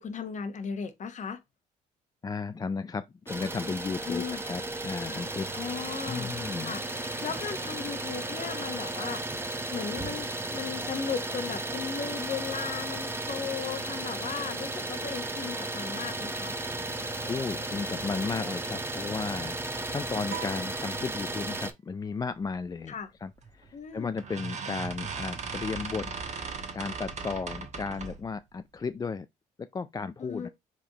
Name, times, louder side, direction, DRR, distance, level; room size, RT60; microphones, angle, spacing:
voice 1, 0.0-1.4 4.1-4.4 5.5-6.8 7.2-9.2 9.7-16.5 22.9-23.1 23.7-24.1 30.2-30.5, left 6 dB, 45° left, 1.2 m, -36 dB
voice 2, 2.2-5.5 6.1-6.8 17.3-22.9 23.2-26.1 26.7-29.3 29.6-30.5, left 5 dB, 25° left, 0.4 m, -34 dB
Idling, 3.3-21.7, right 2 dB, 15° right, 1.0 m, -34 dB
sound 1, 20.3-21.7, right 13 dB, 65° right, 0.6 m, -43 dB
sound 2, 23.4-23.7 24.2-28.3, right 5 dB, 45° right, 1.3 m, -37 dB
4.9 x 3.6 x 2.9 m
supercardioid pair, 75°, 17 cm